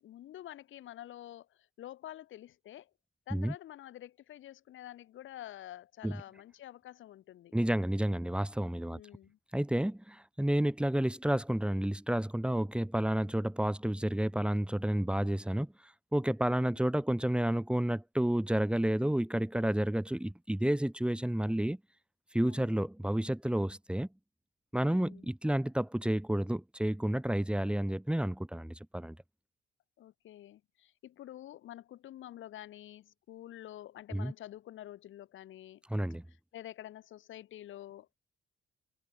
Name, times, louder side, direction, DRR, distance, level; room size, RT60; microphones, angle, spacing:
voice 1, 0.0-2.9 3.3-7.5 8.9-9.4 22.4-22.7 24.8-25.3 30.0-35.8 36.3-38.1, left 12 dB, 80° left, 6.3 m, -48 dB
voice 2, 7.5-9.0 9.5-21.8 22.3-24.1 24.7-29.2 34.1-34.3 35.9-36.2, right 1 dB, 5° right, 2.4 m, -30 dB
cardioid pair, 90°, 20 cm